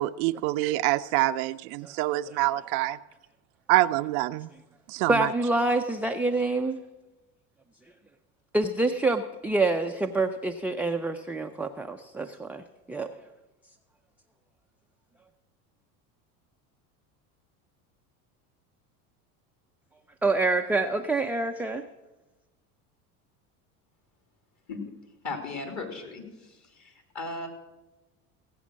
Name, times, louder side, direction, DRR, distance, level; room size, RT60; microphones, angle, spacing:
voice 1, 0.0-3.0 3.7-4.5 4.9-5.3, right 17 dB, 70° right, 0.5 m, -26 dB
voice 2, 5.1-6.8 8.5-13.1 20.2-21.8, right 2 dB, 5° right, 0.4 m, -27 dB
voice 3, 25.2-27.5, left 3 dB, 40° left, 3.0 m, -37 dB
16.0 x 8.3 x 6.3 m
hypercardioid pair, 90°, 45 cm